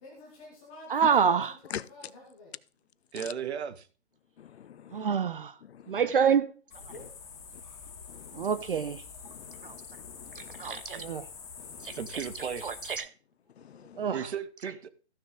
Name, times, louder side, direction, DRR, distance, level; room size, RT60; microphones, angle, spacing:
voice 1, 0.0-2.5 6.9-7.2, left 2 dB, 5° left, 0.5 m, -50 dB
voice 2, 0.9-1.5 4.9-5.5 5.9-6.5 8.3-9.0 9.6-9.7 10.4-11.3 11.8-12.0 12.6-13.0 14.0-14.2, right 7 dB, 50° right, 0.6 m, -27 dB
voice 3, 3.1-3.9 12.0-12.7 14.1-14.9, right 7 dB, 65° right, 1.0 m, -35 dB
voice 4, 4.4-5.1 5.7-6.0 8.1-8.5 9.2-10.8 11.6-12.0 13.6-14.0, left 9 dB, 65° left, 0.6 m, -45 dB
sound 1, 6.7-13.0, left 6 dB, 30° left, 2.2 m, -46 dB
14.5 x 6.6 x 3.7 m
hypercardioid pair, 155°, 35 cm